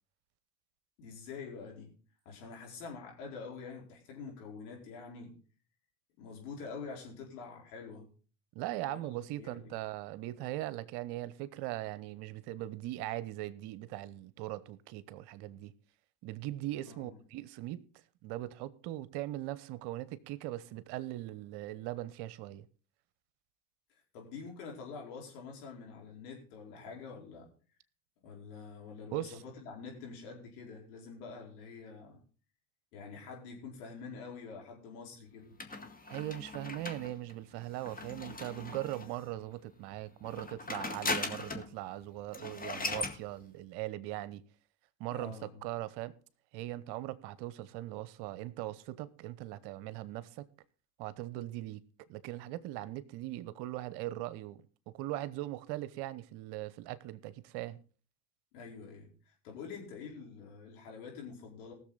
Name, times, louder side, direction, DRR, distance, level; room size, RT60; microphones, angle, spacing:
voice 1, 1.0-1.9 2.2-5.3 6.2-8.1 8.9-9.0 9.4-9.7 16.8-17.2 24.1-27.5 28.2-32.2 32.9-35.6 45.1-45.6 58.5-59.1 59.4-61.7, left 5 dB, 75° left, 4.6 m, -46 dB
voice 2, 8.5-15.7 16.2-17.9 18.2-22.7 29.1-29.4 36.1-44.4 45.0-45.4 45.6-46.1 46.5-50.5 51.0-51.8 52.1-57.8, right 15 dB, 60° right, 1.0 m, -40 dB
sound 1, 35.6-39.2 40.2-41.7 42.0-42.1 42.3-43.2, left 3 dB, 20° left, 1.9 m, -39 dB
19.0 x 7.0 x 4.0 m
hypercardioid pair, 75°, 46 cm